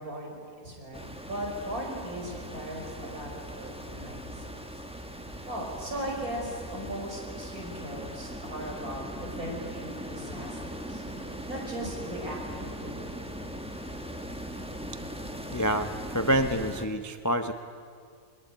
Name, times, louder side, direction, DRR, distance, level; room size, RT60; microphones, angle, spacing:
voice 1, 0.0-4.5 5.5-11.0 11.5-13.1, right 1 dB, 65° right, -1 dB, 5.8 m, -38 dB
sound 1, 0.9-16.8, equal, 5° right, 1.3 m, -40 dB
voice 2, 15.5-17.5, right 1 dB, 20° left, 8 dB, 0.6 m, -27 dB
22.0 x 20.5 x 9.0 m, 2.1 s
omnidirectional pair, 1.6 m